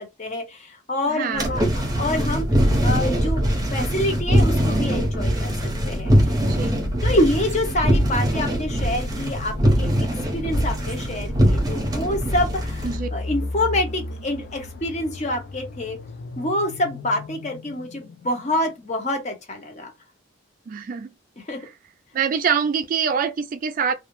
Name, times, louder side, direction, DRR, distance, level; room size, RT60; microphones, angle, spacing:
voice 1, 0.0-6.4 7.0-9.9 10.3-16.0 16.4-19.9 21.5-21.6, left 1 dB, 40° left, 0.8 m, -27 dB
voice 2, 1.0-1.5 6.4-6.8 12.8-13.1 20.7-21.1 21.6-21.7 22.1-23.9, right 6 dB, 45° right, 0.3 m, -25 dB
sound 1, 1.3-13.0, equal, 20° right, 0.7 m, -22 dB
sound 2, 5.2-19.0, left 2 dB, 55° left, 0.4 m, -36 dB
2.3 x 2.0 x 2.9 m
head